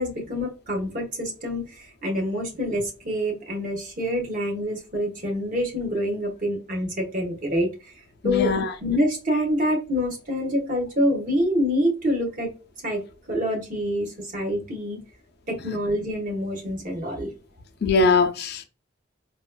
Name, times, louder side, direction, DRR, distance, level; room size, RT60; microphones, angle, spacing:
voice 1, 0.0-1.7 2.0-7.7 8.2-8.5 8.8-12.5 12.8-13.0 13.3-15.0 15.5-17.3, equal, 45° right, 1.2 m, -26 dB
voice 2, 8.2-8.7 17.8-18.6, left 4 dB, 55° left, 0.5 m, -21 dB
4.0 x 2.3 x 2.2 m
head